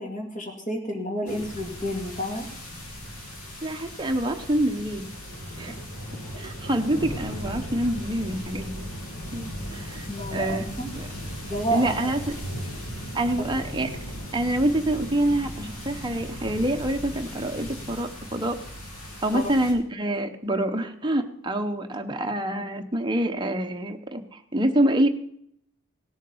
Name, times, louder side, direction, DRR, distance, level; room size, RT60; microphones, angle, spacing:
voice 1, 0.0-2.5 5.7-5.8 10.1-10.9 11.5-12.1 19.3-19.5, equal, 35° left, 2 dB, 2.3 m, -30 dB
sound 1, 1.3-19.7, equal, 90° left, 2.6 m, -37 dB
voice 2, 3.6-5.0 5.6-5.7 6.4-8.9 9.3-10.6 10.9-11.1 11.7-12.4 13.1-13.9 14.3-18.6 19.2-25.1, right 1 dB, 20° right, 4 dB, 0.8 m, -26 dB
17.0 x 7.3 x 5.4 m, 0.69 s
head